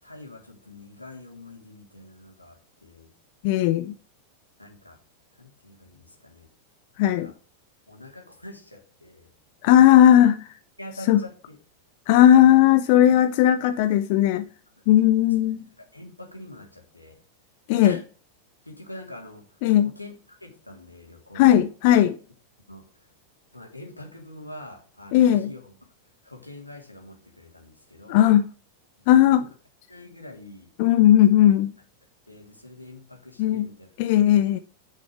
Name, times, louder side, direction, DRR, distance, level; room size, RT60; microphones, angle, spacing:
voice 1, 0.0-3.1 4.6-5.0 5.4-6.5 7.0-7.3 7.9-9.3 10.8-11.6 12.9-13.0 15.0-15.3 15.8-17.2 17.8-18.0 18.6-21.7 22.7-23.1 23.5-25.7 26.2-28.3 29.1-29.5 29.9-30.7 32.3-33.9 34.3-34.4, left 1 dB, 85° left, 2.8 m, -45 dB
voice 2, 3.4-3.9 7.0-7.3 9.6-10.5 11.1-11.2 12.1-14.5 14.9-15.6 17.7-18.0 19.6-19.9 21.3-22.2 25.1-25.5 28.1-28.5 29.1-29.4 30.8-31.7 33.4-33.7 34.0-34.6, left 11 dB, 50° left, 0.6 m, -17 dB
9.9 x 6.6 x 4.7 m
figure-of-eight pair, 90°, 0 cm